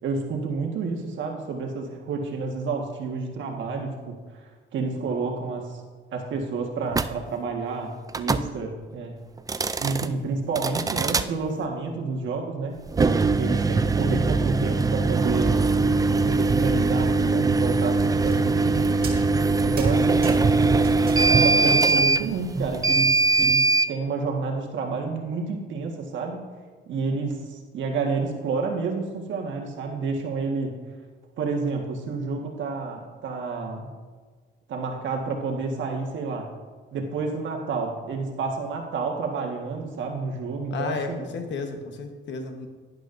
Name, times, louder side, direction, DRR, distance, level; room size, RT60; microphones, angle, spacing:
voice 1, 0.0-4.4 4.7-5.8 6.1-9.2 9.8-15.6 16.1-18.8 19.6-20.4 21.3-26.4 26.9-30.8 31.4-33.9 34.7-36.5 36.9-41.3, right 4 dB, 70° right, 2 dB, 1.6 m, -29 dB
sound 1, 6.9-7.1 8.1-8.5 9.4-10.1 10.6-11.3 12.9-23.9, right 3 dB, 20° right, 0.4 m, -21 dB
sound 2, 18.2-18.7 19.0-19.5 19.8-21.2 21.5-22.4 23.5-23.7, right 5 dB, 50° right, 1.9 m, -41 dB
voice 2, 40.7-42.7, left 4 dB, 65° left, 5 dB, 1.2 m, -32 dB
11.5 x 10.5 x 2.6 m, 1.4 s
cardioid pair, 90°, 20 cm